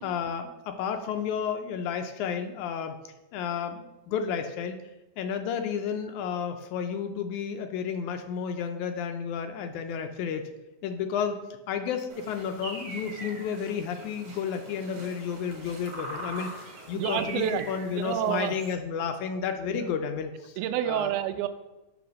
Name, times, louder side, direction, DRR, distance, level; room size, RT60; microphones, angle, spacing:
voice 1, 0.0-3.0 3.3-4.8 5.2-10.5 10.8-20.6 20.9-21.1, left 7 dB, 80° left, 7 dB, 1.9 m, -32 dB
sound 1, 12.1-18.7, right 2 dB, 60° right, 2.1 m, -42 dB
voice 2, 16.9-17.7 17.9-18.6 19.6-19.8 20.6-21.5, right 10 dB, 85° right, 10 dB, 2.0 m, -29 dB
7.0 x 3.3 x 6.1 m, 0.99 s
omnidirectional pair, 3.5 m